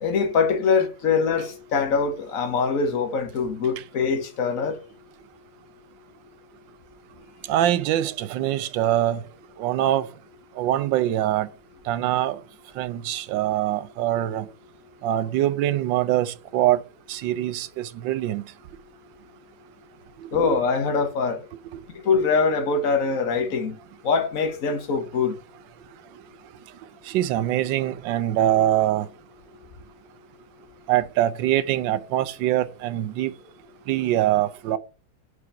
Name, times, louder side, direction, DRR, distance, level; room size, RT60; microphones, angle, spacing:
voice 1, 0.0-4.8 20.3-21.4 22.0-23.8 24.0-25.4, left 5 dB, 50° left, 1.6 m, -23 dB
voice 2, 7.5-9.2 9.6-10.1 10.6-11.5 11.9-12.4 12.8-14.5 15.0-16.8 17.1-18.5 20.2-20.6 27.1-29.1 30.9-33.3 33.9-34.8, right 13 dB, 80° right, 1.3 m, -23 dB
4.9 x 4.7 x 5.6 m
omnidirectional pair, 2.0 m